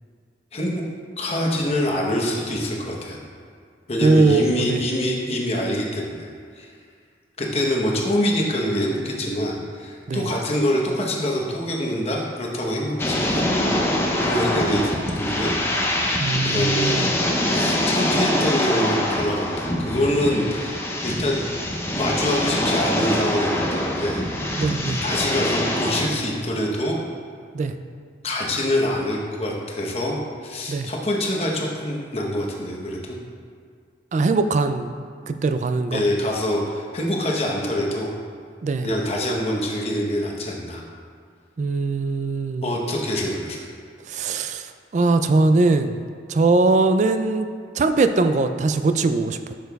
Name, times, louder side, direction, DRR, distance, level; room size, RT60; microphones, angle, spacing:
voice 1, 0.5-0.8 1.2-3.2 3.9-6.3 6.6-6.7 7.4-15.5 16.4-17.1 17.5-20.8 21.0-21.4 21.9-24.2 25.0-27.0 28.2-33.1 35.9-38.1 38.8-40.8 42.6-43.6, equal, 35° left, -2 dB, 0.9 m, -25 dB
voice 2, 4.0-4.8 10.1-10.3 16.2-17.2 24.6-25.0 27.5-27.7 30.7-30.9 34.1-34.9 35.3-36.0 38.6-38.9 41.6-42.7 44.1-46.0 46.3-47.5 47.8-49.5, right 3 dB, 40° right, 9 dB, 0.3 m, -21 dB
sound 1, 13.0-26.1, left 1 dB, 15° left, 0.6 m, -24 dB
10.5 x 6.6 x 2.3 m, 2.1 s
head